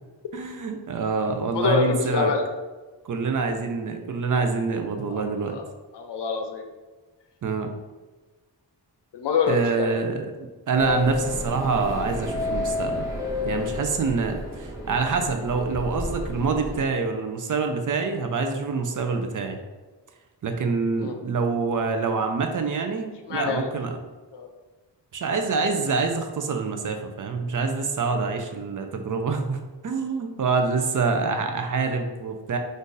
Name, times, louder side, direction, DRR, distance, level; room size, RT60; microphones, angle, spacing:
voice 1, 0.3-2.3 3.0-5.6 7.4-7.7 9.5-13.1 13.4-19.6 20.4-24.0 25.1-32.6, right 4 dB, 50° right, 5 dB, 0.5 m, -26 dB
voice 2, 1.5-2.4 5.1-5.6 5.9-6.6 9.1-10.0 21.0-21.2 23.3-23.7 24.3-24.5, left 5 dB, 70° left, 5 dB, 0.6 m, -26 dB
sound 1, 10.7-16.8, left 2 dB, 10° right, 0.7 m, -31 dB
2.5 x 2.5 x 3.8 m, 1.3 s
cardioid pair, 60°, 43 cm